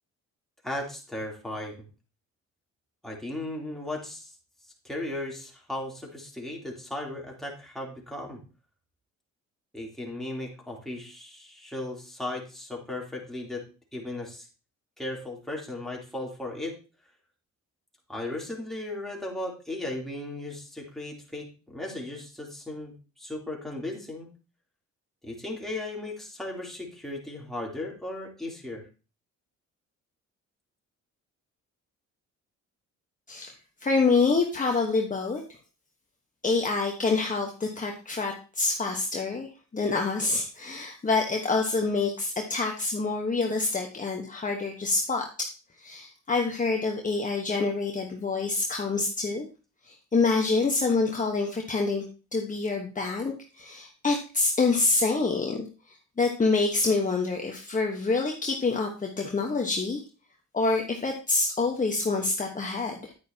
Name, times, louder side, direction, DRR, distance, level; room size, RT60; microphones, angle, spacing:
voice 1, 0.6-1.7 3.0-4.3 4.8-8.4 9.7-13.6 13.9-14.5 15.0-16.8 18.1-22.9 23.2-24.3 25.2-28.8, left 1 dB, ahead, -2 dB, 3.2 m, -36 dB
voice 2, 33.8-35.4 36.4-45.5 45.8-49.5 49.8-52.0 52.3-60.0 60.5-63.1, left 3 dB, 25° left, 1 dB, 1.3 m, -27 dB
9.8 x 9.3 x 2.9 m, 0.33 s
cardioid pair, 90°, 30 cm